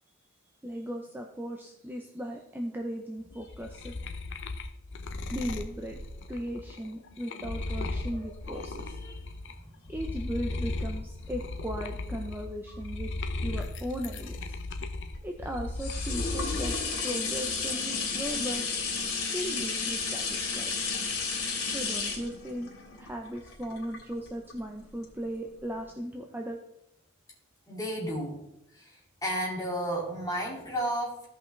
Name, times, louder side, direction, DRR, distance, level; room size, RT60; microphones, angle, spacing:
voice 1, 0.6-4.0 5.3-6.0 6.3-9.0 9.9-13.1 13.4-14.6 15.2-16.7 17.0-18.6 19.3-26.6, equal, 10° right, 1 dB, 0.6 m, -37 dB
sound 1, 3.3-9.5 9.9-16.9 17.3-17.9, left 2 dB, 60° left, 0.7 m, -36 dB
voice 2, 8.5-9.3 9.8-9.9 27.7-28.4 28.7-31.2, right 1 dB, 15° left, -3 dB, 2.5 m, -33 dB
sound 2, 14.8-24.5 25.0-25.1, left 5 dB, 90° left, 2.9 m, -32 dB
16.0 x 5.4 x 3.3 m, 0.82 s
head